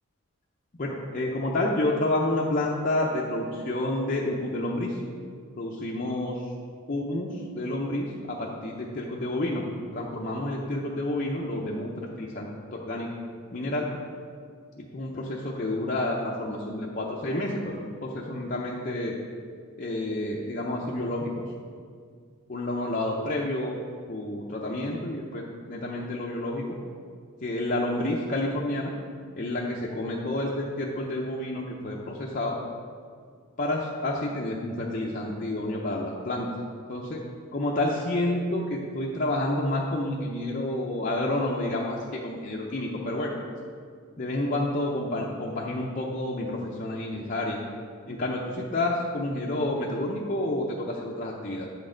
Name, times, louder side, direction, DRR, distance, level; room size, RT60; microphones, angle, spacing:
voice 1, 0.8-5.0 5.6-6.5 6.9-9.6 9.9-11.9 12.2-13.1 13.5-13.9 14.8-19.2 19.8-21.3 22.5-23.7 24.1-26.6 27.4-28.9 29.4-32.6 33.6-36.5 36.9-37.2 37.5-43.3 44.2-47.6 48.1-51.7, left 1 dB, 40° left, -3 dB, 0.6 m, -29 dB
8.6 x 6.2 x 3.8 m, 2.1 s
head